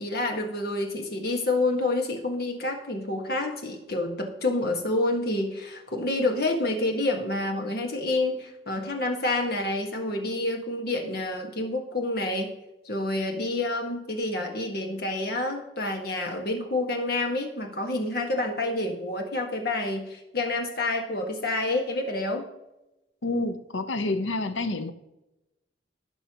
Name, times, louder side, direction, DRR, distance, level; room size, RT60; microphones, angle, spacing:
voice 1, 0.0-12.5 12.8-22.4, left 2 dB, 55° left, 2 dB, 1.6 m, -28 dB
voice 2, 23.2-24.9, left 2 dB, 90° left, 10 dB, 0.8 m, -28 dB
16.0 x 5.6 x 3.0 m, 0.95 s
head